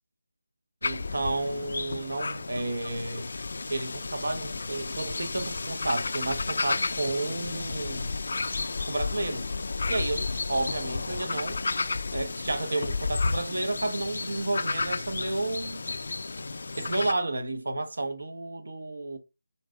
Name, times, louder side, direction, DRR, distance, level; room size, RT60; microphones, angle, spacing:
sound 1, 0.8-17.1, left 3 dB, 60° left, 0.4 m, -32 dB
voice 1, 0.8-3.3 3.7-8.1 8.9-9.5 9.9-11.6 12.1-15.8 16.8-19.2, right 2 dB, 70° right, 1.1 m, -31 dB
5.7 x 4.0 x 2.2 m
figure-of-eight pair, 160°, 0 cm